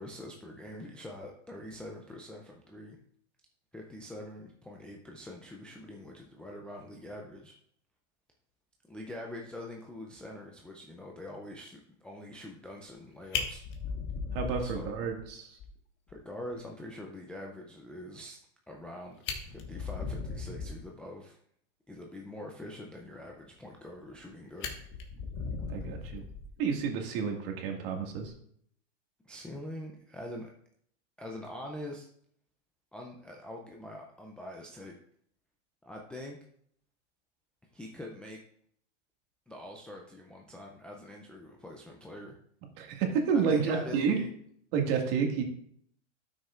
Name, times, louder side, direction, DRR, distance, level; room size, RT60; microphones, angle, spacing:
voice 1, 0.0-3.0 3.7-7.6 8.9-13.6 14.6-14.9 16.1-18.4 18.7-19.2 19.5-21.4 21.9-24.8 29.3-30.5 31.2-32.1 32.9-34.9 35.8-36.4 37.7-38.4 39.5-42.4 43.5-44.3, left 1 dB, 5° left, -1 dB, 0.3 m, -44 dB
Fire, 12.9-13.0 13.3-15.3 15.6-15.7 16.1-16.2 16.5-16.6 18.8-18.9 19.2-20.9 23.7-24.2 24.6-26.8 28.1-28.3, left 5 dB, 30° left, 1.4 m, -37 dB
voice 2, 14.3-15.6 25.7-26.2 26.6-28.3 42.8-44.2 44.7-45.4, right 6 dB, 50° right, 2 dB, 1.9 m, -30 dB
12.0 x 6.4 x 2.4 m, 0.65 s
hypercardioid pair, 135°, 36 cm